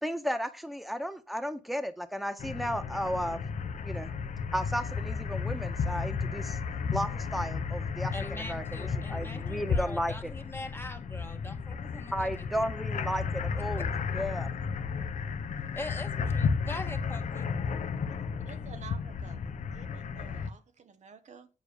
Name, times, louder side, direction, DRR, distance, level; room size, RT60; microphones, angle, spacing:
voice 1, 0.0-3.4 3.8-4.1 4.5-6.6 6.9-10.3 12.1-14.6, equal, ahead, 1.5 m, -34 dB
sound 1, 2.4-20.5, left 5 dB, 70° left, 0.9 m, -33 dB
voice 2, 8.1-12.7 13.8-13.9 15.7-17.5, left 2 dB, 20° left, 1.7 m, -42 dB
voice 3, 18.4-21.5, right 6 dB, 70° right, 1.2 m, -51 dB
8.5 x 5.0 x 6.7 m
cardioid pair, 55°, 13 cm